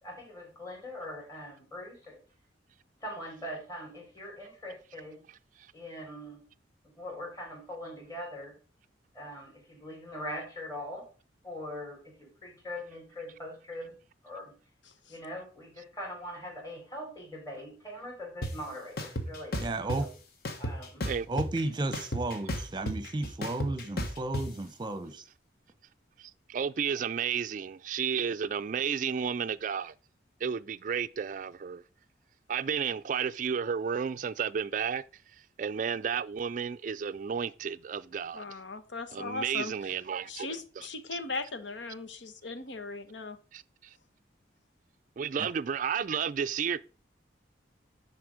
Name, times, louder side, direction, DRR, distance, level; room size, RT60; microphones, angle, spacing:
voice 1, 0.0-2.2 3.0-5.2 5.7-6.4 7.0-8.5 9.1-11.0 11.4-13.9 14.2-14.5 15.1-20.1 20.6-21.0, left 1 dB, 20° left, 3.6 m, -42 dB
voice 2, 14.9-15.2 38.3-40.0 40.3-43.4, left 3 dB, 85° left, 1.1 m, -39 dB
sound 1, 18.4-18.5 19.0-20.0 20.4-21.6 21.9-24.4, equal, 55° left, 1.3 m, -33 dB
voice 3, 19.6-20.1 21.3-25.2, right 2 dB, 25° right, 0.8 m, -33 dB
voice 4, 26.2-29.9 30.4-31.8 32.5-35.0 35.6-38.4 39.1-40.8 43.5-43.6 45.2-46.8, right 7 dB, 45° right, 0.3 m, -32 dB
10.5 x 4.3 x 4.8 m
head